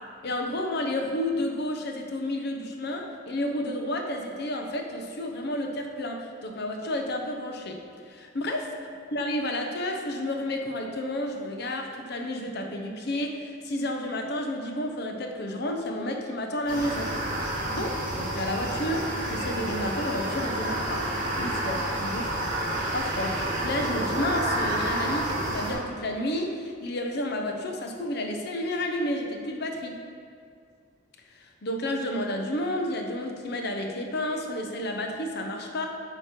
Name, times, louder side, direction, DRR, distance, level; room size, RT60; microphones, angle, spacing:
voice 1, 0.2-8.7 9.1-17.1 17.4-21.1 21.4-22.3 22.9-30.0 31.3-35.9, left 1 dB, 55° left, 3 dB, 0.7 m, -31 dB
sound 1, 16.7-25.7, right 1 dB, 45° right, 1.4 m, -29 dB
8.7 x 3.1 x 5.1 m, 2.2 s
head